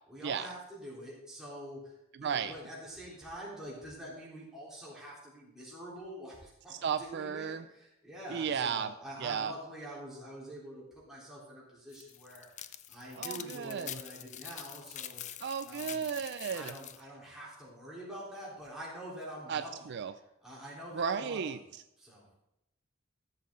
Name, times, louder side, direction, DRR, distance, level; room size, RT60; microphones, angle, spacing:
voice 1, 0.1-1.9 2.2-12.6 12.9-15.2 15.7-16.1 16.5-19.9 20.4-21.6 22.0-22.3, equal, 5° right, -7 dB, 3.6 m, -46 dB
voice 2, 2.2-2.5 6.7-7.6 8.3-8.9 9.2-9.5 13.2-14.0 15.4-16.7 19.5-20.1 20.9-21.6, right 7 dB, 55° right, 11 dB, 0.4 m, -34 dB
sound 1, 11.9-17.0, left 11 dB, 35° left, 0.4 m, -45 dB
14.5 x 7.4 x 3.8 m, 0.88 s
head